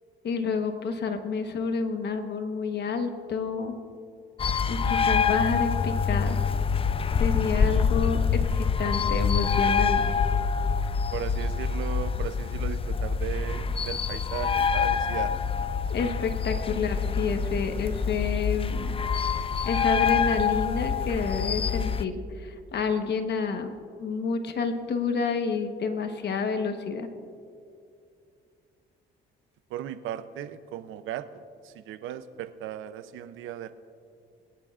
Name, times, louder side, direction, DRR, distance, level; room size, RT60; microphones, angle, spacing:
voice 1, 0.2-3.8 4.7-6.4 7.2-10.0 15.9-19.0 19.6-23.7 24.0-27.1, left 5 dB, 60° left, 7 dB, 1.2 m, -29 dB
sound 1, 4.4-22.1, left 6 dB, 30° left, 0.4 m, -26 dB
voice 2, 11.1-15.3 29.7-33.7, right 11 dB, 85° right, 12 dB, 0.6 m, -37 dB
21.0 x 10.0 x 2.5 m, 2.4 s
cardioid pair, 90°, 20 cm